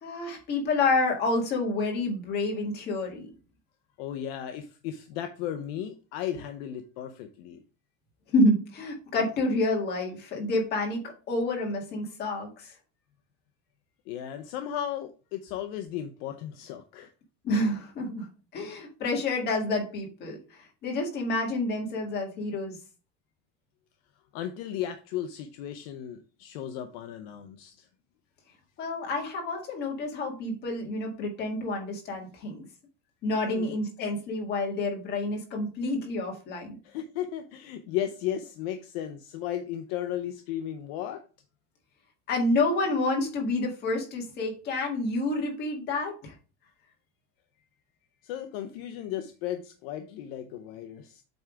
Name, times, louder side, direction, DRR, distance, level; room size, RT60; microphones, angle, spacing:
voice 1, 0.0-3.3 8.3-12.7 17.4-18.3 18.5-22.8 28.8-32.6 33.2-36.7 42.3-46.3, left 2 dB, 30° left, 1.7 m, -28 dB
voice 2, 4.0-7.6 14.1-17.1 24.3-27.9 33.4-33.7 36.8-41.3 48.2-51.2, left 10 dB, 55° left, 0.7 m, -35 dB
7.9 x 3.5 x 4.8 m
cardioid pair, 180°, 35 cm